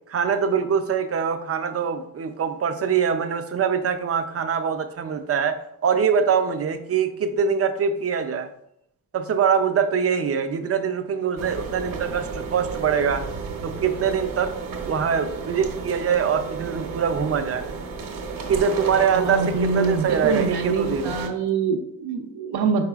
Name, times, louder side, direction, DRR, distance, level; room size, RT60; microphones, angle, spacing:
voice 1, 0.1-8.5 9.1-13.3 13.6-14.5 14.8-17.6 18.5-21.2, right 6 dB, 40° right, 9 dB, 0.4 m, -23 dB
sound 1, 11.4-21.3, right 5 dB, 60° right, 0.8 m, -33 dB
voice 2, 19.1-22.8, right 4 dB, 85° right, 2 dB, 0.6 m, -25 dB
4.8 x 4.7 x 2.3 m, 0.75 s
wide cardioid pair, 130°, 38 cm